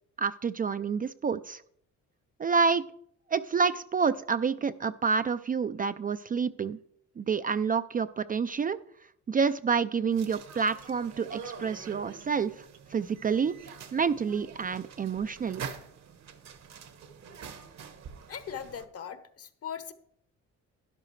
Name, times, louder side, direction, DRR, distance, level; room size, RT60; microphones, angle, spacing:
voice 1, 0.2-1.6 2.4-2.9 3.3-6.8 7.2-8.8 9.3-12.6 12.9-13.6 13.9-15.7, right 5 dB, 30° right, 12 dB, 0.3 m, -28 dB
sound 1, 10.1-18.8, right 6 dB, 65° right, 1.2 m, -45 dB
voice 2, 18.3-19.9, left 8 dB, 50° left, 11 dB, 1.0 m, -39 dB
12.5 x 10.5 x 3.2 m, 0.67 s
cardioid pair, 90°, 30 cm